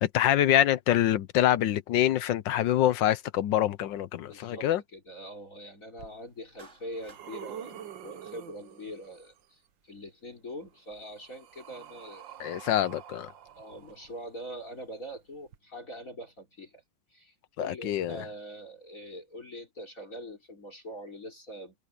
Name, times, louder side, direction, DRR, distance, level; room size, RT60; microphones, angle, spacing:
voice 1, 0.0-4.8 12.4-13.3 17.6-18.2, left 12 dB, 70° left, 1.3 m, -25 dB
voice 2, 4.3-12.3 12.7-12.8 13.6-16.8 17.1-21.7, equal, 40° left, 4.2 m, -43 dB
sound 1, 6.0-6.1 6.6-9.4 10.6-14.5 15.5-15.6, right 9 dB, 65° right, 1.7 m, -47 dB
Clapping, 6.6-7.3, right 3 dB, 35° right, 2.9 m, -53 dB
omnidirectional pair, 2.2 m